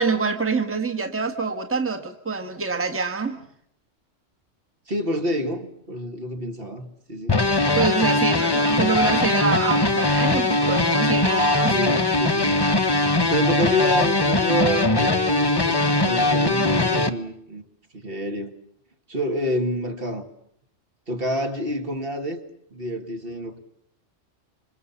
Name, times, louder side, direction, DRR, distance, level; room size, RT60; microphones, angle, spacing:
voice 1, 0.0-3.4 7.7-11.8, right 4 dB, 10° right, 1.5 m, -25 dB
voice 2, 4.9-7.4 11.7-17.6 17.9-18.5 19.1-20.3 21.1-22.4 22.7-23.6, equal, 45° right, 2.4 m, -28 dB
sound 1, 7.3-17.1, left 2 dB, 20° left, 1.1 m, -21 dB
27.0 x 25.5 x 7.2 m
omnidirectional pair, 1.3 m